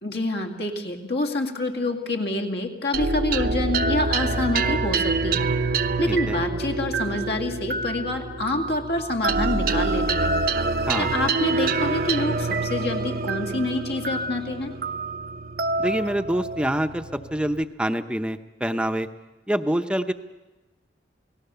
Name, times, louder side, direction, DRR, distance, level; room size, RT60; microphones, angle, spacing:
voice 1, 0.0-5.5 6.0-10.3 10.9-14.7, left 2 dB, 65° left, 3 dB, 2.2 m, -27 dB
sound 1, 2.9-17.6, right 3 dB, 55° right, 0.8 m, -26 dB
voice 2, 6.1-6.4 10.8-11.1 15.8-17.0 17.3-19.1 19.5-20.1, right 1 dB, 5° right, 8 dB, 0.8 m, -26 dB
28.5 x 18.5 x 6.9 m, 1.1 s
head